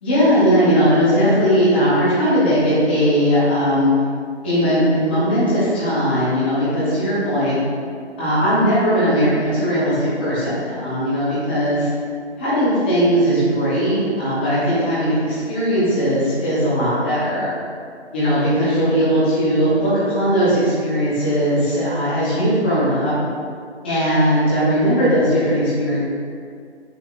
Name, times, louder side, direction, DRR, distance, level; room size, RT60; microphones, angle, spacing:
voice 1, 0.0-3.9 4.4-7.6 8.2-11.9 12.4-17.5 18.1-23.1 23.8-26.0, equal, 10° left, -12 dB, 0.8 m, -18 dB
8.5 x 6.2 x 2.5 m, 2.2 s
hypercardioid pair, 165°, 34 cm